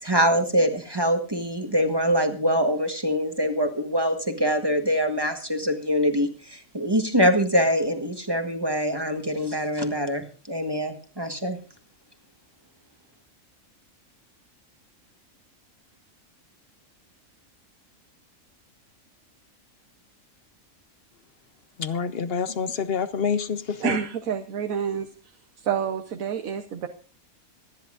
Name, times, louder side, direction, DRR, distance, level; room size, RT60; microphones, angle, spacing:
voice 1, 0.0-11.6, equal, 20° right, 5 dB, 1.3 m, -24 dB
voice 2, 21.8-24.0, left 6 dB, 50° left, 12 dB, 0.9 m, -27 dB
voice 3, 23.8-25.1 25.6-26.9, right 8 dB, 75° right, 6 dB, 1.4 m, -28 dB
25.5 x 10.5 x 2.5 m, 0.37 s
omnidirectional pair, 1.5 m